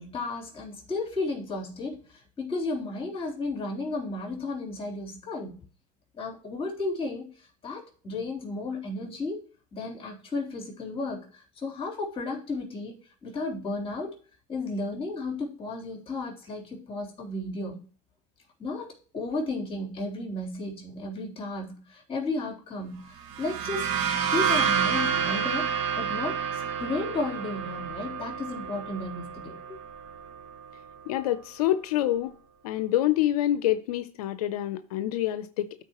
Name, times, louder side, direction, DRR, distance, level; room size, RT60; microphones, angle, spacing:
voice 1, 0.0-5.6 6.1-9.5 9.7-14.1 14.5-17.8 18.6-23.9 24.3-25.7 26.0-29.8, left 2 dB, 30° left, 3.4 m, -33 dB
sound 1, 23.2-30.8, right 7 dB, 75° right, 1.6 m, -29 dB
voice 2, 31.1-32.3 32.6-35.7, left 13 dB, 90° left, 0.5 m, -26 dB
12.5 x 4.5 x 2.9 m
supercardioid pair, 90°, 19 cm